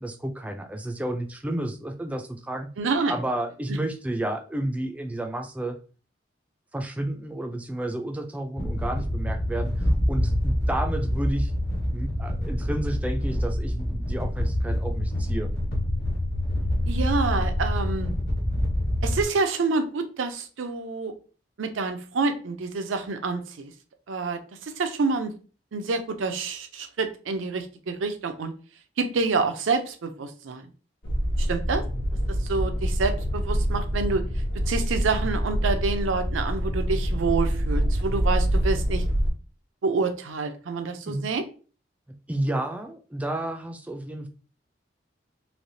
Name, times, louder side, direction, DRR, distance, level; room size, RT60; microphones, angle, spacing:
voice 1, 0.0-2.7 3.1-5.8 6.7-11.5 11.9-15.5 41.1-41.3 42.3-44.3, right 1 dB, 5° right, 5 dB, 0.3 m, -31 dB
voice 2, 2.8-3.1 16.9-18.1 19.0-21.1 21.6-23.7 24.1-25.3 25.7-28.5 29.0-30.7 31.4-31.8 32.5-34.2 34.7-39.0 39.8-41.5, right 4 dB, 90° right, 7 dB, 0.5 m, -27 dB
sound 1, 8.6-19.2, left 1 dB, 55° left, 1.1 m, -26 dB
sound 2, 31.0-39.3, equal, 75° left, 0.9 m, -26 dB
3.2 x 2.8 x 2.6 m, 0.37 s
head